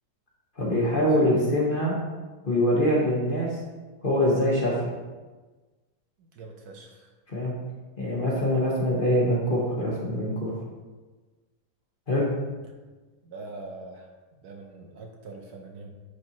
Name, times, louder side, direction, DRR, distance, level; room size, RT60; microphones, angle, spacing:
voice 1, 0.6-1.9 2.4-3.6 4.0-4.8 7.3-7.5 8.0-10.5 12.1-12.3, equal, 35° left, -5 dB, 1.3 m, -24 dB
voice 2, 6.2-7.1 13.2-14.1 14.4-15.9, right 3 dB, 65° right, 2 dB, 1.2 m, -43 dB
9.6 x 4.3 x 3.0 m, 1.3 s
omnidirectional pair, 1.9 m